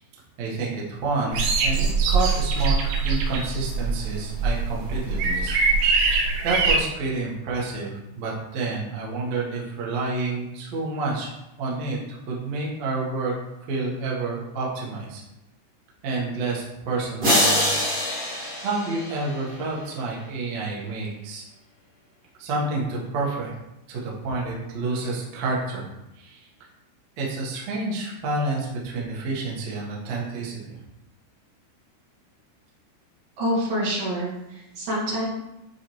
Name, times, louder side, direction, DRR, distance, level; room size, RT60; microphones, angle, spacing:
voice 1, 0.4-2.8 3.0-5.6 5.9-6.1 6.4-7.9 8.1-11.3 11.6-13.3 13.7-15.2 16.0-17.7 18.6-21.4 22.4-23.5 23.9-25.9 26.2-26.4 27.2-30.8, right 3 dB, 75° right, -4 dB, 1.6 m, -29 dB
sound 1, 1.3-6.8, right 4 dB, 90° right, 3.5 m, -23 dB
sound 2, 17.2-19.6, equal, 30° right, 2.1 m, -24 dB
voice 2, 33.4-35.3, equal, 55° right, -6 dB, 3.2 m, -27 dB
9.9 x 4.4 x 3.1 m, 0.93 s
omnidirectional pair, 5.5 m